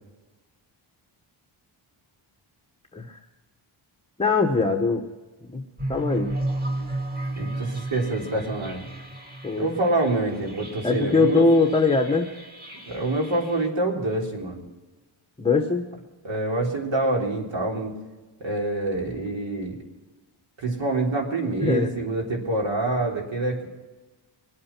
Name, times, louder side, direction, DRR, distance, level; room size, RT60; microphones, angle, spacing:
voice 1, 4.2-5.1 5.4-5.6 5.9-6.3 9.4-9.7 10.8-12.3 15.4-15.9 21.6-21.9, left 3 dB, 10° left, 3 dB, 1.0 m, -21 dB
sound 1, 5.8-13.7, right 1 dB, 20° right, 2.3 m, -34 dB
voice 2, 7.4-8.8 9.6-11.5 12.9-14.6 16.2-17.9 18.4-19.8 20.6-23.7, right 2 dB, 65° right, 0 dB, 3.9 m, -26 dB
24.0 x 8.6 x 5.9 m, 1.2 s
wide cardioid pair, 165°, 49 cm